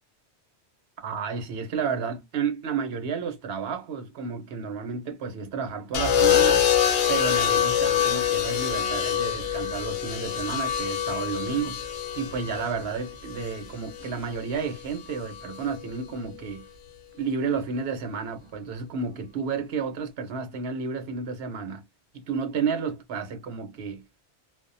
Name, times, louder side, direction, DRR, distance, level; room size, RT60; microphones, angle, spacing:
voice 1, 1.0-6.7 7.1-11.8 12.2-16.6 17.2-21.8 22.1-24.0, right 5 dB, 70° right, 0.9 m, -31 dB
sound 1, 5.9-14.1 15.3-15.7, left 9 dB, 70° left, 0.8 m, -25 dB
2.4 x 2.1 x 2.5 m
omnidirectional pair, 1.1 m